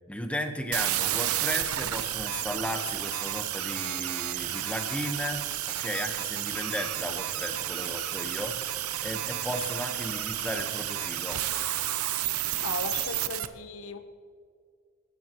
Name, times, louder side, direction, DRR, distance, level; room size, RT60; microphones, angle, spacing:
voice 1, 0.1-11.4, equal, 5° left, 4 dB, 1.2 m, -35 dB
sound 1, 0.7-13.5, right 12 dB, 85° right, 0.8 m, -31 dB
sound 2, 1.6-12.2, left 3 dB, 45° left, 4.0 m, -52 dB
voice 2, 12.6-14.0, left 4 dB, 70° left, 9 dB, 1.0 m, -36 dB
27.0 x 14.5 x 3.1 m, 2.2 s
head